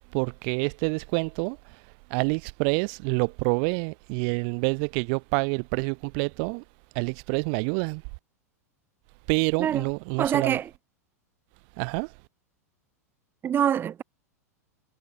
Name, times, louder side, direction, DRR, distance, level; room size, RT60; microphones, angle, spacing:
voice 1, 0.1-1.8 2.1-6.6 6.9-8.0 9.3-10.6 11.8-12.1, right 40 dB or more, 45° right, 2.6 m, -27 dB
voice 2, 10.2-10.7 13.4-14.0, right 9 dB, 25° right, 2.1 m, -25 dB
figure-of-eight pair, 90°, 9 cm